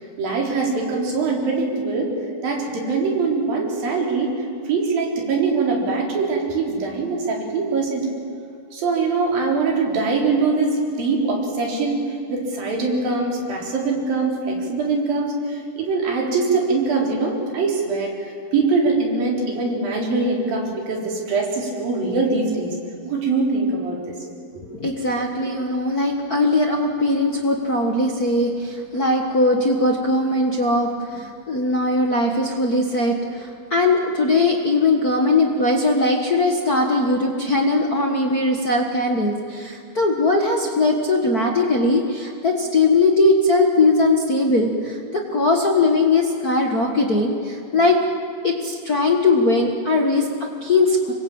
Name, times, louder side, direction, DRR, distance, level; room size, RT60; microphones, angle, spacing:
voice 1, 0.2-2.1 2.4-4.3 4.7-8.1 8.7-18.1 18.5-22.7 23.1-24.2, right 3 dB, 65° right, -1 dB, 5.7 m, -22 dB
voice 2, 24.8-48.0 48.4-51.1, left 2 dB, 50° left, 1 dB, 1.1 m, -20 dB
26.5 x 22.0 x 8.8 m, 2.4 s
omnidirectional pair, 4.4 m